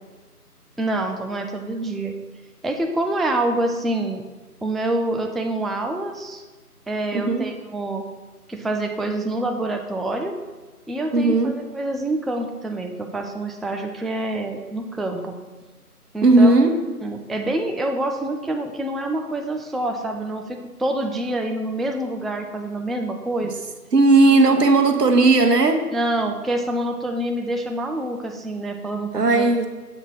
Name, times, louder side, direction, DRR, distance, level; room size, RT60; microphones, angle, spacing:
voice 1, 0.8-2.1 2.6-4.2 4.6-6.4 6.9-8.0 8.5-10.4 10.9-15.4 16.1-16.5 17.0-23.6 25.9-29.5, right 1 dB, ahead, 4 dB, 0.3 m, -26 dB
voice 2, 7.1-7.5 11.1-11.7 16.2-16.8 23.9-25.9 29.1-29.8, right 2 dB, 85° right, 5 dB, 1.0 m, -16 dB
7.1 x 3.6 x 5.8 m, 1.3 s
figure-of-eight pair, 175°, 47 cm